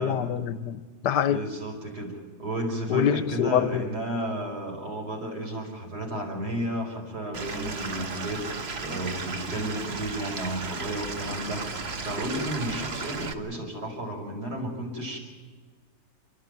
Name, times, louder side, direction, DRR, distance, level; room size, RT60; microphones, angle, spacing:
voice 1, 0.0-1.4 2.9-3.9, left 9 dB, 85° left, 1.5 m, -25 dB
voice 2, 1.2-8.4 8.8-11.7 12.0-15.2, right 1 dB, 70° right, 6.0 m, -33 dB
Stream / Liquid, 7.3-13.3, right 4 dB, 40° right, 1.4 m, -35 dB
29.5 x 12.0 x 9.3 m
omnidirectional pair, 1.8 m